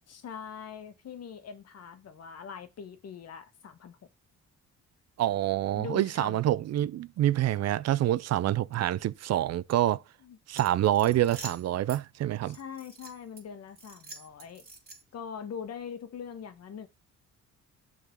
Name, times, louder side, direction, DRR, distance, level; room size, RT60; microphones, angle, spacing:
voice 1, 0.1-4.0 5.7-6.4 10.2-10.4 12.4-14.6 15.1-16.9, left 7 dB, 55° left, 1.3 m, -42 dB
voice 2, 5.2-10.0 10.5-12.6, right 13 dB, 60° right, 0.5 m, -27 dB
sound 1, 10.5-12.0 12.5-13.4 13.8-15.2, right 3 dB, 30° right, 2.7 m, -46 dB
6.8 x 4.0 x 5.9 m
cardioid pair, 90°, 30 cm